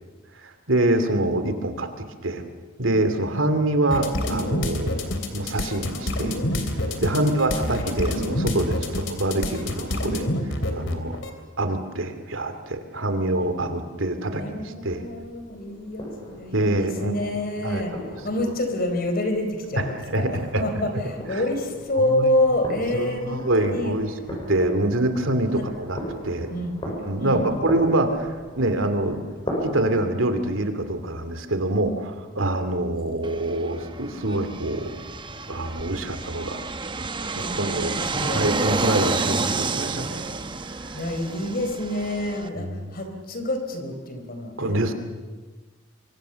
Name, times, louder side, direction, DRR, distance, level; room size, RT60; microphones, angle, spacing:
voice 1, 0.4-1.9 2.2-2.4 2.8-4.9 5.3-6.4 7.0-10.3 10.7-11.2 11.6-15.0 16.5-17.1 17.6-17.8 19.8-20.6 21.3-21.4 22.1-22.3 22.9-24.1 24.5-26.5 27.1-29.2 29.6-34.9 35.5-36.6 37.2-40.4 42.6-42.8 44.6-44.9, right 1 dB, 85° right, 8 dB, 2.5 m, -25 dB
sound 1, 3.9-11.3, left 1 dB, 65° left, 3.0 m, -27 dB
voice 2, 14.3-17.9 18.2-23.9 25.5-25.6 26.5-26.8 27.2-27.6 33.0-33.3 37.3-38.5 40.9-44.9, left 1 dB, 50° left, 5 dB, 4.1 m, -28 dB
sound 2, 14.8-29.9, equal, 25° left, 7.8 m, -38 dB
Fixed-wing aircraft airplane, 33.2-42.5, right 3 dB, 25° right, 0.9 m, -29 dB
25.0 x 24.0 x 7.0 m, 1.3 s
head